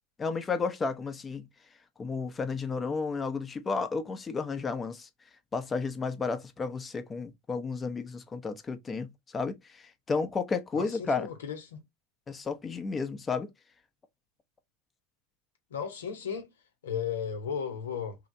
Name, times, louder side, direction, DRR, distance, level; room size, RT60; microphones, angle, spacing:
voice 1, 0.2-1.5 2.0-5.1 5.5-11.3 12.3-13.5, left 4 dB, 25° left, 0.7 m, -32 dB
voice 2, 10.7-11.8 15.7-16.5 16.8-18.2, left 7 dB, 90° left, 1.0 m, -35 dB
3.2 x 2.8 x 2.6 m
hypercardioid pair, 100°, 0 cm